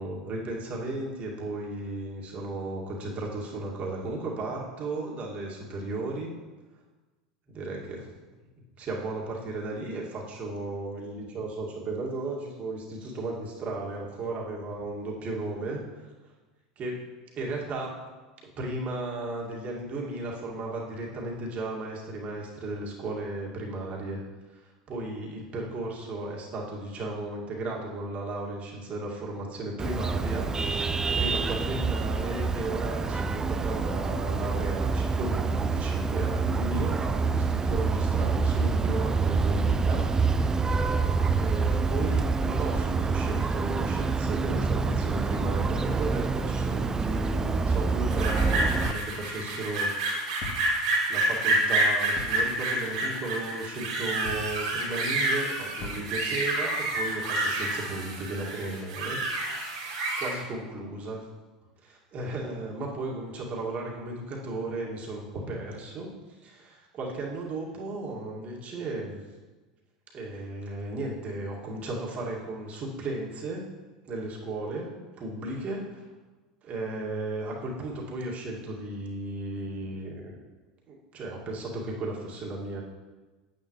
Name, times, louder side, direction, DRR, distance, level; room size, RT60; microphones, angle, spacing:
voice 1, 0.0-6.3 7.5-8.1 8.8-15.8 16.8-17.0 17.4-18.0 18.6-24.2 24.5-30.5 30.7-30.8 31.1-40.0 41.4-49.9 51.1-59.2 60.2-61.3 61.8-69.2 70.1-73.6 74.0-74.9 75.2-76.1 76.6-80.3 80.9-82.8, right 2 dB, 40° right, -2 dB, 2.2 m, -35 dB
Vehicle horn car horn honking, 29.8-48.9, right 4 dB, 15° right, 0.5 m, -27 dB
sound 1, 48.1-60.3, right 2 dB, 70° right, 2.8 m, -28 dB
sound 2, 48.8-49.4 50.4-51.0 52.1-52.7 54.2-54.8 55.8-56.4, left 3 dB, 45° left, 2.5 m, -42 dB
8.9 x 8.8 x 3.2 m, 1.2 s
hypercardioid pair, 85°, 4 cm